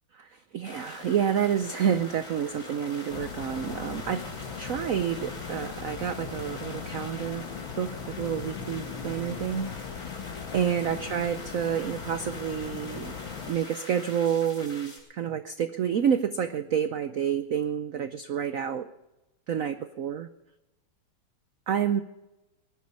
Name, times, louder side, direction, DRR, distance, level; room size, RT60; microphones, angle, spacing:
voice 1, 0.1-4.2 4.6-7.5 7.8-10.2 10.5-13.2 13.5-18.9 19.5-20.3 21.7-22.0, right 8 dB, 85° right, 10 dB, 0.7 m, -29 dB
sound 1, 0.6-15.0, left 2 dB, 30° left, 5.8 m, -44 dB
sound 2, 3.1-13.5, left 6 dB, 70° left, 1.9 m, -39 dB
19.5 x 11.0 x 5.5 m, 0.97 s
omnidirectional pair, 2.3 m